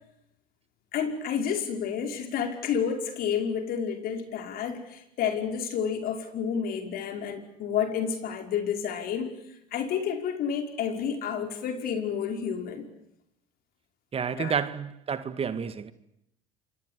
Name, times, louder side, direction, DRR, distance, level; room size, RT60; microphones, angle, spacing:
voice 1, 0.9-9.4 9.7-12.9 14.4-14.6, left 7 dB, 60° left, 5.4 m, -30 dB
voice 2, 14.1-15.9, right 7 dB, 35° right, 2.1 m, -30 dB
27.5 x 25.0 x 8.4 m
hypercardioid pair, 80°, 18 cm